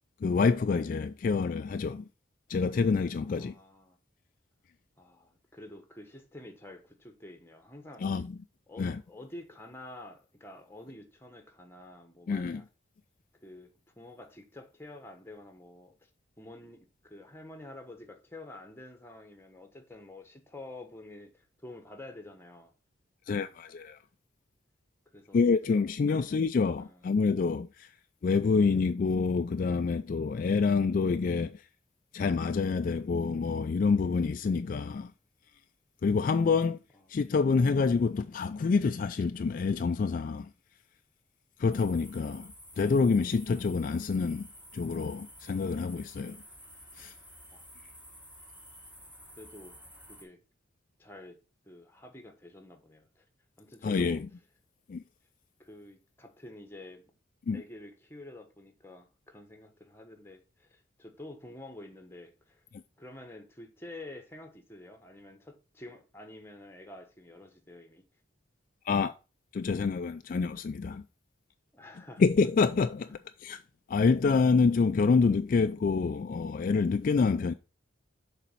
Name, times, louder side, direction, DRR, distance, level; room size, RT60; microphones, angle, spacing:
voice 1, 0.2-2.1 2.5-3.5 8.0-8.3 8.8-9.0 12.3-12.6 23.3-24.0 25.3-27.9 28.2-31.6 32.1-35.1 36.0-36.8 37.1-40.5 41.6-44.5 44.7-46.4 47.0-47.1 53.8-54.2 54.9-55.0 57.5-57.6 68.9-69.1 69.5-71.0 72.2-73.6 73.9-77.5, left 4 dB, 45° left, 0.3 m, -27 dB
voice 2, 3.2-4.0 5.0-8.2 8.7-12.7 13.4-13.7 14.0-15.9 16.4-22.7 25.1-25.4 26.1-26.3 26.7-27.1 36.9-37.0 47.5-47.6 49.4-49.8 50.1-50.4 51.0-51.4 51.6-53.2 53.6-54.2 55.6-57.1 57.5-62.6 63.0-68.0 71.7-72.2 73.1-73.2, left 1 dB, 10° left, 1.1 m, -48 dB
sound 1, 41.7-50.2, equal, 10° right, 1.6 m, -52 dB
6.7 x 4.1 x 5.7 m
head